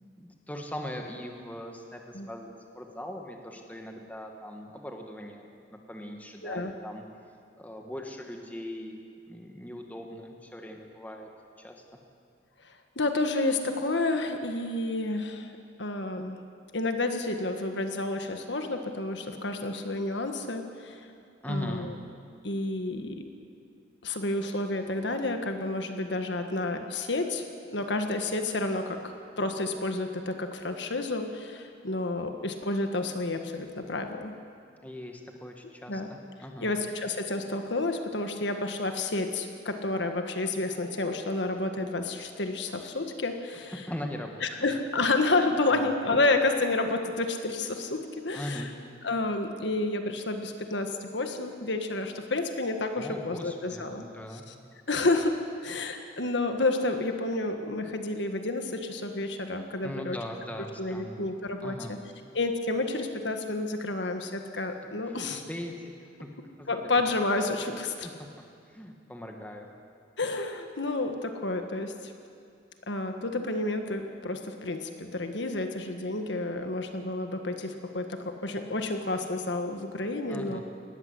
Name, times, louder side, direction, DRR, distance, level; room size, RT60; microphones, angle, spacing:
voice 1, 0.1-2.5 2.7-7.0 7.6-9.0 9.3-11.3 11.6-11.8 21.4-21.9 34.8-36.7 43.7-44.9 45.7-45.9 48.3-48.7 53.0-54.4 59.8-61.2 61.6-62.0 65.0-65.9 66.2-67.0 68.0-69.7 80.3-80.6, left 1 dB, 10° left, 2 dB, 1.7 m, -40 dB
voice 2, 6.4-6.7 12.6-15.5 15.8-16.4 16.7-21.0 21.5-21.9 22.4-23.2 24.0-27.4 27.7-34.3 35.9-36.1 36.6-43.7 44.4-48.7 49.0-54.0 54.9-60.2 60.8-62.0 62.3-65.4 66.7-68.1 70.2-72.1 72.9-80.6, left 2 dB, 65° left, 6 dB, 1.6 m, -30 dB
19.0 x 15.0 x 9.8 m, 2.3 s
head